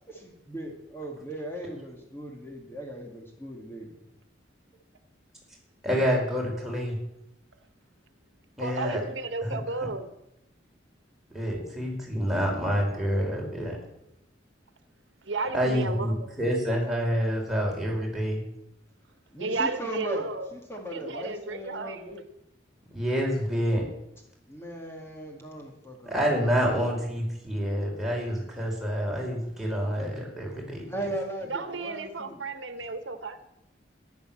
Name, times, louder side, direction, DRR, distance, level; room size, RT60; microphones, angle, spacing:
voice 1, 0.1-4.0 19.3-22.2 24.5-26.6 30.9-32.4, right 1 dB, 15° left, 1 dB, 2.0 m, -38 dB
voice 2, 5.8-7.0 8.6-9.0 9.4-9.6 11.3-13.8 15.5-18.4 22.9-23.8 26.0-30.8, equal, ahead, -3 dB, 5.1 m, -27 dB
voice 3, 8.6-10.1 15.2-16.3 19.4-20.6 20.9-22.2 31.5-33.4, right 3 dB, 90° right, 10 dB, 1.3 m, -33 dB
14.0 x 11.0 x 7.5 m, 0.85 s
head